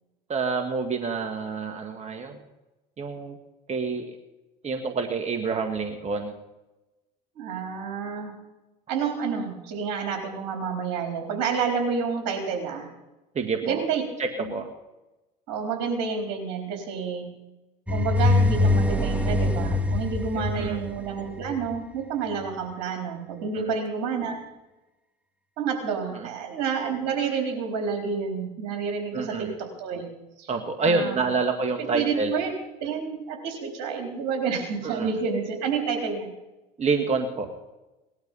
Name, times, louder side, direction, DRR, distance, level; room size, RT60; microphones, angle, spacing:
voice 1, 0.3-2.4 3.0-3.4 3.7-4.1 4.6-6.3 13.4-13.9 14.2-14.7 20.4-20.8 23.5-23.7 26.2-26.3 29.1-29.5 30.5-32.3 34.8-35.2 36.8-37.5, right 4 dB, 30° right, 4 dB, 1.9 m, -27 dB
voice 2, 7.4-8.3 8.9-12.9 13.6-14.0 14.4-14.5 15.5-17.3 17.9-24.4 25.6-30.1 30.4-30.5 30.8-31.3 31.8-32.5 32.8-36.3, right 5 dB, 70° right, 3 dB, 4.0 m, -29 dB
sound 1, 17.9-21.8, left 2 dB, 5° right, 1.7 m, -23 dB
19.0 x 12.0 x 5.6 m, 1.0 s
hypercardioid pair, 80°, 21 cm